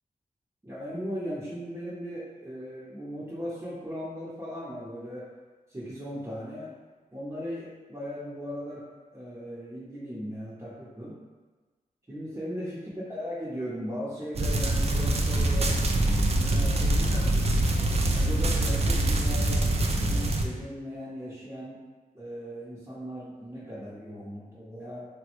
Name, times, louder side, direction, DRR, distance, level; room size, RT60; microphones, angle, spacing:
voice 1, 0.6-5.3 5.7-6.7 7.1-8.8 9.1-11.2 12.1-15.8 16.4-17.4 18.1-21.8 22.1-25.1, equal, 15° right, -10 dB, 0.8 m, -38 dB
sound 1, 14.3-20.4, right 1 dB, 45° right, 0.4 m, -24 dB
3.3 x 2.1 x 3.0 m, 1.3 s
cardioid pair, 50°, 15 cm